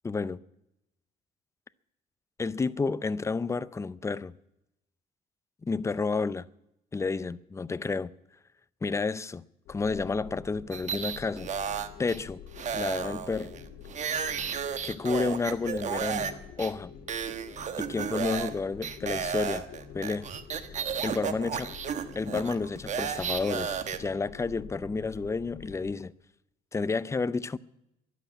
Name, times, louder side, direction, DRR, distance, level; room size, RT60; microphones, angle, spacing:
voice 1, 0.0-0.4 2.4-4.3 5.6-6.5 6.9-8.1 8.8-9.4 9.7-11.5 12.0-12.4 12.7-13.5 14.8-16.9 17.8-19.7 19.9-20.3 21.0-21.7 22.2-26.1 26.7-27.6, left 4 dB, 15° left, 0.5 m, -30 dB
sound 1, 9.7-26.0, left 6 dB, 90° left, 2.3 m, -47 dB
sound 2, 10.7-12.2 12.6-16.3 16.6-16.7 17.1-18.5 18.8-24.0, right 7 dB, 45° right, 1.3 m, -33 dB
13.0 x 11.5 x 9.2 m
cardioid pair, 110°, 17 cm